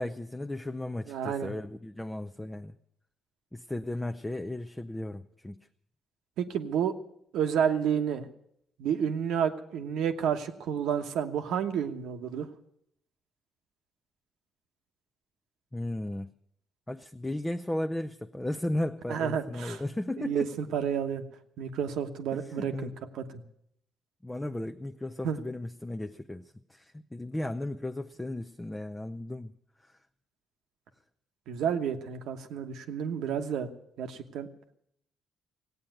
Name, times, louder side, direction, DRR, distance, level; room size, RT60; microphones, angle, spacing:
voice 1, 0.0-2.8 3.5-5.6 15.7-16.3 16.9-20.5 22.3-22.9 24.2-30.0, left 1 dB, 10° left, 5 dB, 0.6 m, -35 dB
voice 2, 1.1-1.5 6.4-6.9 7.3-8.3 8.8-12.5 19.1-19.8 20.2-21.2 21.6-23.4 25.2-25.4 31.5-33.7 34.0-34.5, right 8 dB, 85° right, 6 dB, 1.2 m, -30 dB
16.0 x 8.7 x 9.1 m, 0.73 s
cardioid pair, 90°, 0 cm